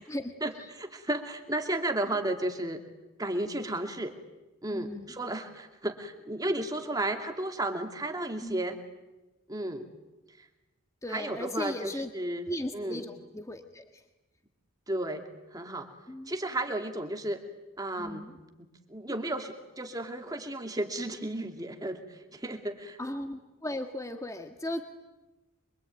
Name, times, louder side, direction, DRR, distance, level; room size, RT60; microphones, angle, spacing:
voice 1, 0.8-2.8 3.2-4.1 4.6-8.8 9.5-9.9 10.4-10.5 11.1-12.5 12.7-13.0 14.9-15.9 16.3-17.4 17.8-18.3 18.6-23.0, right 1 dB, 20° right, 5 dB, 2.5 m, -33 dB
voice 2, 4.7-5.1 8.4-8.6 11.0-12.1 12.5-14.0 16.1-16.3 18.0-18.4 23.0-24.9, left 1 dB, 15° left, 6 dB, 1.6 m, -37 dB
25.0 x 24.5 x 9.3 m, 1.1 s
head